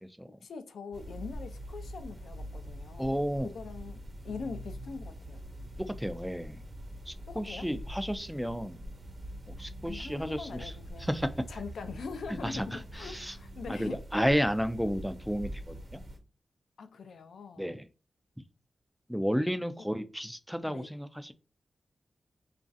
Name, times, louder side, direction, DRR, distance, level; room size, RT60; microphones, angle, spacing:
voice 1, 0.3-3.1 3.5-4.0 4.2-5.4 7.3-7.7 9.8-11.1 11.5-14.0 16.8-17.7 20.7-20.9, left 5 dB, 85° left, 0.4 m, -42 dB
sound 1, 0.9-16.2, equal, 50° right, 1.0 m, -44 dB
voice 2, 3.0-3.5 5.8-6.6 7.1-8.8 9.6-10.7 11.0-11.3 12.3-13.4 13.7-16.0 17.6-17.9 19.1-21.3, equal, ahead, 0.3 m, -32 dB
3.0 x 2.4 x 2.6 m
cardioid pair, 75°, 0 cm